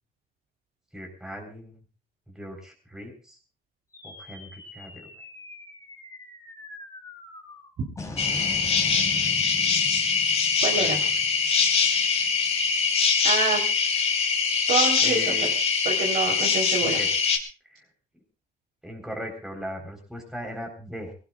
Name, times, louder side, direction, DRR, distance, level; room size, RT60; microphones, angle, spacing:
voice 1, 0.9-1.8 2.3-3.4 4.0-5.1 9.2-9.8 10.4-10.9 15.0-15.5 16.8-17.1 17.6-17.9 18.8-21.1, equal, 5° right, 1 dB, 4.3 m, -39 dB
sound 1, 3.9-12.5, left 2 dB, 20° left, 4.5 m, -41 dB
sound 2, 8.2-17.4, left 5 dB, 40° left, 2.7 m, -23 dB
voice 2, 10.6-11.0 13.2-13.6 14.7-15.3 15.9-17.0, right 4 dB, 60° right, -1 dB, 3.9 m, -26 dB
22.5 x 18.0 x 2.5 m, 0.34 s
cardioid pair, 110°, 17 cm